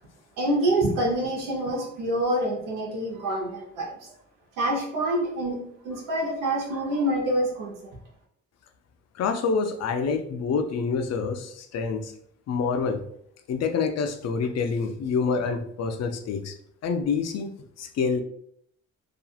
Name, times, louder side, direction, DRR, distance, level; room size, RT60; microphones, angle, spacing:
voice 1, 0.4-4.0 4.6-5.6 5.8-7.9, right 1 dB, 85° right, -3 dB, 0.8 m, -26 dB
voice 2, 9.2-12.1 12.5-13.0 13.5-16.5 16.8-18.2, left 5 dB, 55° left, 7 dB, 0.4 m, -27 dB
2.7 x 2.4 x 2.3 m, 0.68 s
cardioid pair, 85°, 31 cm